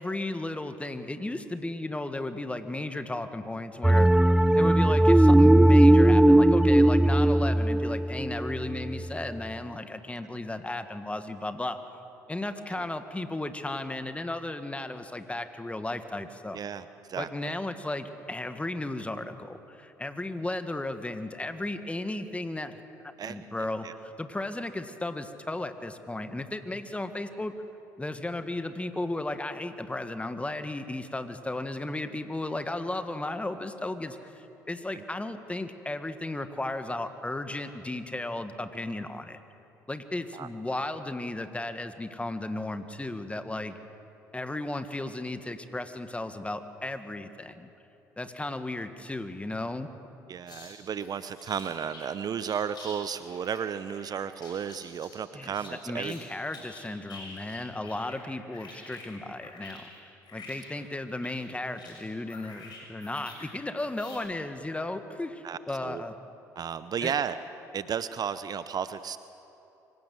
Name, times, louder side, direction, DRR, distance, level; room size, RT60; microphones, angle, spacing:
voice 1, 0.0-4.1 4.5-11.8 12.3-16.6 17.2-22.8 23.2-27.5 28.0-39.4 39.9-43.8 44.3-47.7 48.2-49.9 55.3-55.6 55.8-59.8 60.3-66.2 67.0-67.1, left 2 dB, 15° left, 9 dB, 1.7 m, -35 dB
sound 1, 3.8-9.1, right 1 dB, 5° right, 0.6 m, -19 dB
voice 2, 16.5-17.3 23.2-23.5 23.8-23.9 34.9-35.0 40.3-40.5 50.3-56.1 65.4-66.0 66.6-67.4 67.7-69.2, right 7 dB, 45° right, 13 dB, 0.7 m, -33 dB
sound 2, 50.5-50.7 51.0-52.1 52.4-53.0 53.2-56.2 56.5-58.2 58.5-63.5 63.8-64.2, left 3 dB, 50° left, 7.0 m, -48 dB
25.0 x 16.5 x 7.7 m, 2.9 s
hypercardioid pair, 55°, 10 cm